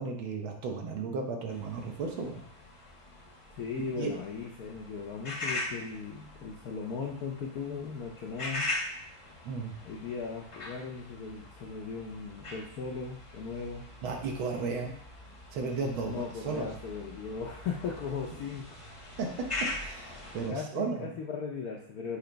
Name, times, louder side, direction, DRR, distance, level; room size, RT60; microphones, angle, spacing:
voice 1, 0.0-2.4 4.0-4.2 9.4-9.7 14.0-14.9 15.5-16.7 19.2-19.3 19.8-21.1, right 4 dB, 75° right, 2 dB, 1.8 m, -34 dB
sound 1, 1.5-20.5, left 2 dB, 30° left, 0.6 m, -42 dB
voice 2, 3.5-8.7 9.8-13.8 16.0-18.7 20.5-22.2, left 5 dB, 70° left, -1 dB, 0.9 m, -38 dB
6.9 x 2.9 x 5.0 m, 0.66 s
omnidirectional pair, 2.3 m